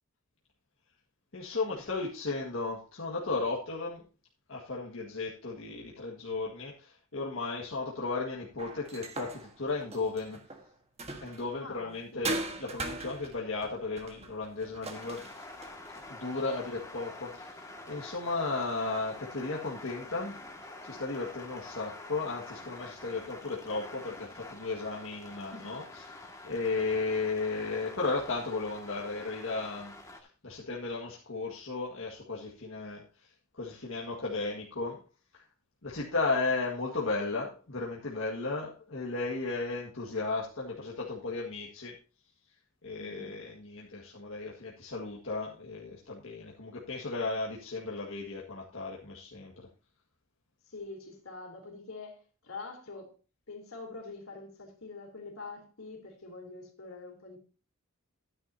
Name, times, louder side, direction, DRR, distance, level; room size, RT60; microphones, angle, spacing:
voice 1, 1.3-4.0 4.5-10.4 11.2-15.2 16.1-20.4 20.8-29.9 30.4-33.0 33.6-35.0 35.3-35.4 35.8-42.0 42.8-49.7, left 3 dB, 65° left, 1.8 m, -35 dB
sound 1, 8.6-11.6 12.2-16.1, right 2 dB, 30° right, 1.4 m, -40 dB
voice 2, 11.6-12.5 25.5-25.8 43.0-43.3 50.7-53.1 53.5-57.4, left 3 dB, 85° left, 3.3 m, -45 dB
sound 2, 14.9-30.2, left 2 dB, 15° left, 1.9 m, -47 dB
13.0 x 9.7 x 2.8 m
head